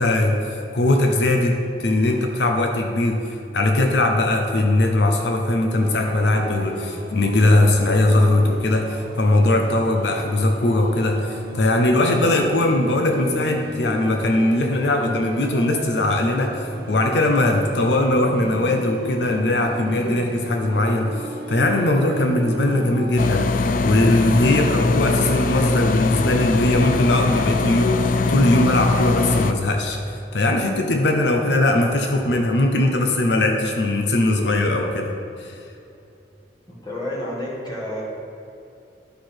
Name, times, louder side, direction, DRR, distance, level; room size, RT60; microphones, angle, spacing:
voice 1, 0.0-35.1 35.4-35.6, left 1 dB, 85° left, 3 dB, 0.7 m, -20 dB
sound 1, 5.8-23.3, right 1 dB, 60° right, 0.8 m, -34 dB
sound 2, 23.2-29.5, left 3 dB, 50° left, 0.3 m, -21 dB
voice 2, 36.7-38.0, left 1 dB, 25° left, -5 dB, 1.8 m, -30 dB
11.5 x 4.7 x 4.4 m, 2.7 s
head